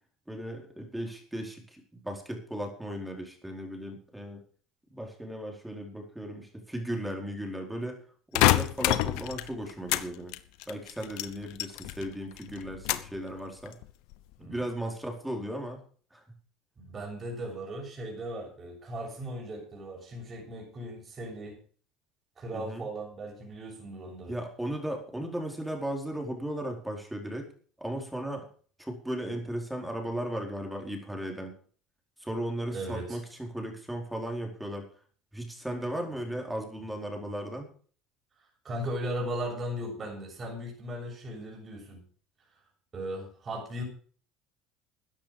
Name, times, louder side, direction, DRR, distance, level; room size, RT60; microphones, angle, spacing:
voice 1, 0.3-4.4 4.9-8.0 8.3-10.4 10.7-13.8 14.4-15.8 16.1-16.2 22.5-22.9 24.3-27.5 27.8-28.5 28.8-31.5 32.2-34.9 35.3-37.7, right 1 dB, 5° right, 2 dB, 4.4 m, -36 dB
sound 1, 8.3-10.1 10.3-12.1 12.4-13.2 13.7-14.1, left 17 dB, 75° left, 1.0 m, -27 dB
voice 2, 16.8-21.6 22.4-24.3 32.7-33.2 38.6-42.0 42.9-43.8, right 1 dB, 30° right, 0 dB, 7.0 m, -37 dB
13.5 x 10.0 x 5.1 m, 0.44 s
supercardioid pair, 95°, 0 cm